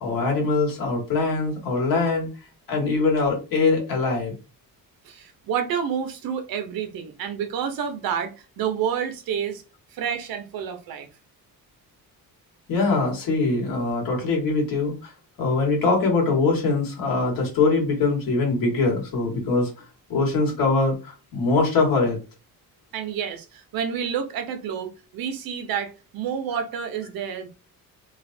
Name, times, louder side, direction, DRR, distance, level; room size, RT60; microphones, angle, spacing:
voice 1, 0.0-2.3 2.7-4.3 12.7-15.1 15.4-19.7 20.1-22.2, left 3 dB, 75° left, 1.6 m, -22 dB
voice 2, 5.0-8.3 8.6-9.6 9.9-11.1 22.9-27.5, right 8 dB, 80° right, 0.8 m, -29 dB
3.2 x 2.4 x 2.6 m
cardioid pair, 165°, 35 cm